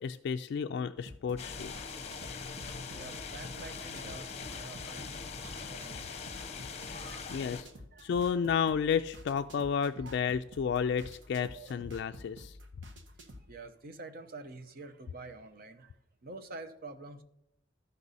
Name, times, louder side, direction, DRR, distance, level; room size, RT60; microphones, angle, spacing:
voice 1, 0.0-1.7 7.3-7.7 8.0-12.6, left 7 dB, 60° left, 9 dB, 0.3 m, -31 dB
sound 1, 1.0-13.5, equal, 65° right, 1.3 m, -51 dB
sound 2, 1.4-7.6, left 5 dB, 35° left, 0.7 m, -42 dB
voice 2, 2.7-6.3 6.8-7.3 7.6-8.1 8.4-8.5 9.5-10.2 10.9-11.0 11.5-11.9 13.2-17.2, right 2 dB, 50° right, 8 dB, 0.8 m, -49 dB
13.5 x 5.3 x 4.1 m, 0.84 s
head